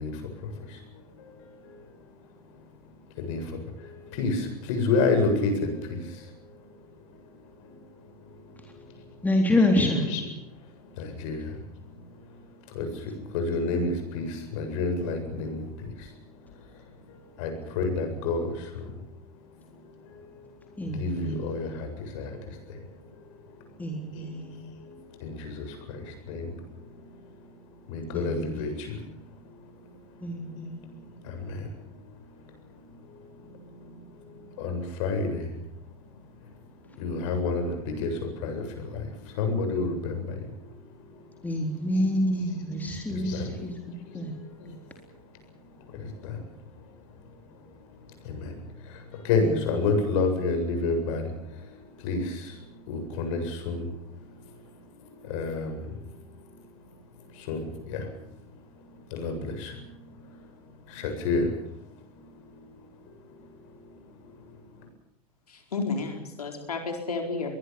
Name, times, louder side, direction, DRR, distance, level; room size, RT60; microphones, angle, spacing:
voice 1, 0.0-2.0 2.4-2.6 3.2-6.9 7.2-7.3 7.6-7.9 8.2-9.2 9.6-10.2 10.5-19.0 19.4-23.7 24.1-27.5 27.8-29.7 30.1-35.9 37.0-41.5 41.9-45.0 45.8-46.5 46.8-54.6 55.0-56.5 57.3-60.4 60.9-64.9, left 3 dB, 55° left, 6 dB, 7.9 m, -32 dB
voice 2, 9.2-10.1 20.8-21.4 23.8-24.5 28.1-28.7 30.2-30.8 41.4-44.3 49.4-49.9, left 1 dB, 10° left, 2 dB, 3.8 m, -27 dB
voice 3, 65.5-67.6, left 4 dB, 75° left, 4 dB, 4.6 m, -32 dB
24.0 x 21.5 x 7.1 m, 0.79 s
figure-of-eight pair, 90°, 20 cm